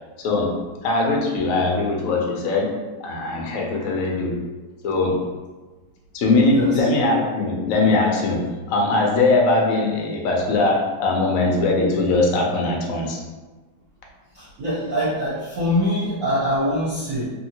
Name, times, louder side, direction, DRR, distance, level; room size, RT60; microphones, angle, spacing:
voice 1, 0.2-4.4 4.8-5.2 6.1-13.2, left 2 dB, 75° left, 0 dB, 0.7 m, -21 dB
voice 2, 6.4-6.9 14.3-17.2, equal, 60° right, -10 dB, 1.0 m, -24 dB
2.8 x 2.7 x 2.7 m, 1.2 s
omnidirectional pair, 2.0 m